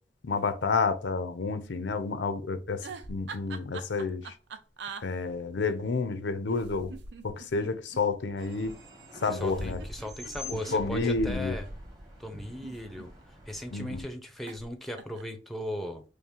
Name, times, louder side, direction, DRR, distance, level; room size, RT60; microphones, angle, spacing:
voice 1, 0.2-4.3 5.0-6.9 7.2-8.8 9.2-9.8 10.5-11.6 13.7-14.0, left 4 dB, 80° left, 0.5 m, -30 dB
sound 1, 2.8-5.0 6.5-8.0 9.3-11.6 12.4-13.4 14.5-14.7 14.9-15.4, right 4 dB, 75° right, 0.5 m, -43 dB
sound 2, 8.4-14.0, equal, 20° right, 1.0 m, -43 dB
voice 2, 9.3-11.7 12.2-16.0, equal, ahead, 0.5 m, -38 dB
5.4 x 2.1 x 2.8 m
head